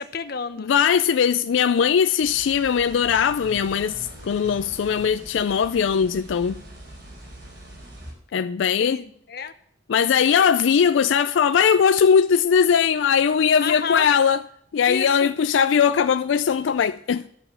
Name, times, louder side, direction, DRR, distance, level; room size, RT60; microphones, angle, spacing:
voice 1, 0.0-0.7 8.8-9.5 13.6-14.1 14.9-15.3, left 5 dB, 55° left, 0.8 m, -30 dB
voice 2, 0.6-6.6 8.3-9.0 9.9-14.4 14.7-17.3, left 7 dB, 85° left, 0.4 m, -20 dB
sound 1, 2.2-8.1, right 1 dB, 60° right, 4.5 m, -42 dB
12.0 x 7.0 x 7.1 m
head